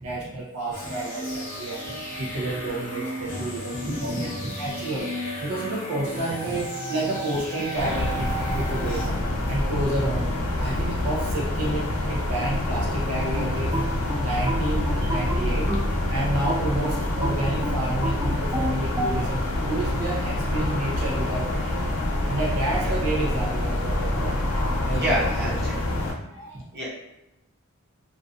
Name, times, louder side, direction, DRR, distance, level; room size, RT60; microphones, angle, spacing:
voice 1, 0.0-1.9 2.2-9.2 9.5-10.3 10.6-13.8 14.2-15.7 16.1-21.9 22.3-24.4 24.8-25.8 26.3-26.6, right 2 dB, 85° right, -3 dB, 0.5 m, -30 dB
sound 1, 0.7-9.0, equal, 40° left, 0.7 m, -34 dB
voice 2, 3.8-4.5 6.5-6.6 22.8-22.9 24.9-25.8 26.7-26.9, right 1 dB, 50° right, -4 dB, 0.8 m, -29 dB
sound 2, 7.7-26.1, left 1 dB, 70° left, 0.5 m, -26 dB
sound 3, 13.4-15.9 16.5-19.2, right 1 dB, 15° right, 0.4 m, -31 dB
2.4 x 2.2 x 2.5 m, 0.90 s
head